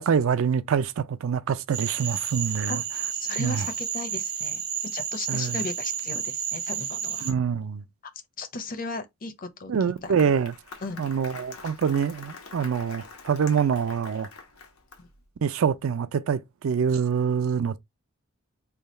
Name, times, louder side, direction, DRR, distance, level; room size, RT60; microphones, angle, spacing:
voice 1, 0.0-2.8 3.4-3.7 5.3-5.6 7.2-7.8 9.7-10.5 11.0-14.3 15.4-17.8, right 7 dB, 70° right, 0.4 m, -25 dB
Cricket / Frog, 1.7-7.3, right 8 dB, 85° right, 1.2 m, -31 dB
voice 2, 2.7-7.3 8.4-10.1 10.8-11.0 15.0-15.1, left 3 dB, 40° left, 0.7 m, -36 dB
Applause, 9.7-15.2, left 4 dB, 90° left, 1.0 m, -45 dB
3.4 x 2.2 x 4.0 m
head